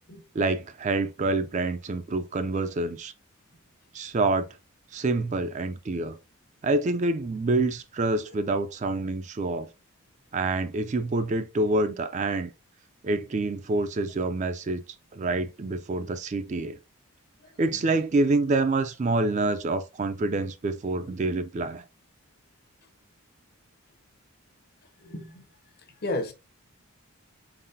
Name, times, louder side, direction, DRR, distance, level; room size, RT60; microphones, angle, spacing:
voice 1, 0.3-3.1 3.9-4.5 4.9-6.2 6.6-9.7 10.3-12.5 13.0-14.8 15.1-16.8 17.6-21.8, right 2 dB, 35° right, 0.3 m, -27 dB
voice 2, 25.0-25.4 26.0-26.3, left 2 dB, 45° left, 0.8 m, -32 dB
4.6 x 4.0 x 2.6 m
head